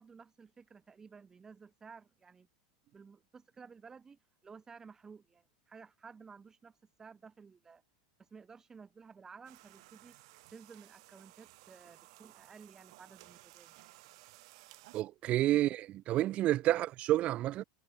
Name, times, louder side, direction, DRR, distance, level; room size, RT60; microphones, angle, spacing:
voice 1, 0.0-2.5 2.9-7.8 8.3-10.2 10.5-13.8, right 5 dB, 15° right, 5.0 m, -54 dB
sound 1, 9.4-15.0, right 22 dB, 65° right, 7.0 m, -58 dB
voice 2, 14.9-17.6, right 14 dB, 40° right, 0.9 m, -29 dB
supercardioid pair, 135°, 3 cm